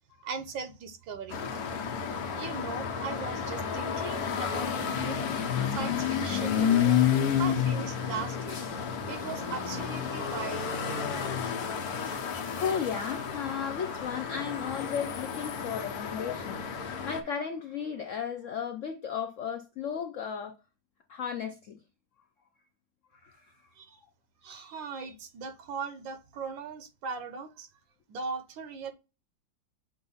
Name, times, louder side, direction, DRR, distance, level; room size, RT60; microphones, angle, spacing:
voice 1, 0.2-1.6 2.3-6.9 7.4-8.6 9.1-10.8 12.0-12.2 23.8-23.9 24.4-27.7 28.1-28.9, right 5 dB, 80° right, 1.6 m, -39 dB
sound 1, 1.3-17.2, left 8 dB, 60° left, 1.2 m, -31 dB
voice 2, 12.6-20.5 21.1-21.8 23.2-23.4, left 7 dB, 80° left, 0.7 m, -35 dB
6.9 x 2.5 x 5.5 m
omnidirectional pair, 2.0 m